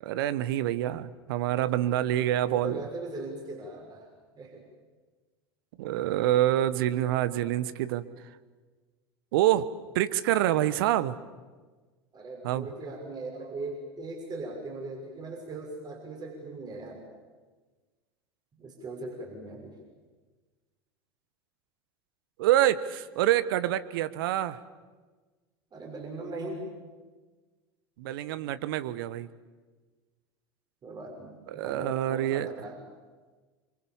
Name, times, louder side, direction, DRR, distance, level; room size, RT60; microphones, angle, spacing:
voice 1, 0.0-2.8 5.8-8.0 9.3-9.7 9.9-11.1 12.4-12.7 22.4-24.6 28.0-29.3 31.5-32.5, right 13 dB, 60° right, 14 dB, 1.3 m, -26 dB
voice 2, 2.4-4.1 4.4-4.6 12.1-17.0 18.6-19.7 25.7-26.7 30.8-32.8, right 2 dB, 30° right, 1 dB, 6.3 m, -40 dB
27.5 x 24.5 x 7.4 m, 1.3 s
figure-of-eight pair, 80°, 13 cm